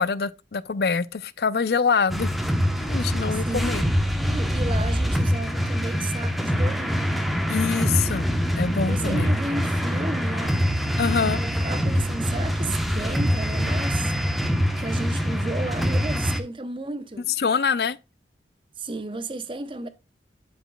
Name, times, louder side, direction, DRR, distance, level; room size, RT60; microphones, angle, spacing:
voice 1, 0.0-2.3 2.8-3.8 7.5-8.3 8.6-9.3 11.0-11.4 17.4-18.0, left 5 dB, 65° left, 0.5 m, -25 dB
sound 1, 2.1-16.4, equal, ahead, 0.9 m, -24 dB
voice 2, 3.3-3.8 4.2-7.1 8.9-10.6 11.1-14.3 14.7-17.3 18.8-19.9, right 2 dB, 30° right, 0.7 m, -33 dB
11.5 x 5.1 x 2.2 m
head